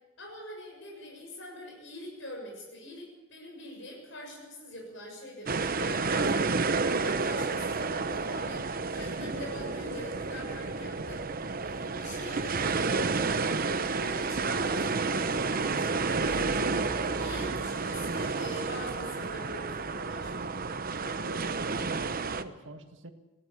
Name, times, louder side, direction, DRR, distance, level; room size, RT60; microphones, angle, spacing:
voice 1, 0.2-6.5 6.8-11.3 11.6-13.5 13.9-16.9 17.2-20.4, left 1 dB, 70° left, 0 dB, 7.2 m, -43 dB
sound 1, 5.5-22.4, right 4 dB, 45° right, 0.9 m, -30 dB
sound 2, 15.6-17.7, left 1 dB, 10° left, 1.1 m, -42 dB
voice 2, 21.2-23.1, right 2 dB, 70° right, 6 dB, 2.0 m, -44 dB
20.5 x 16.5 x 8.8 m, 1.1 s
head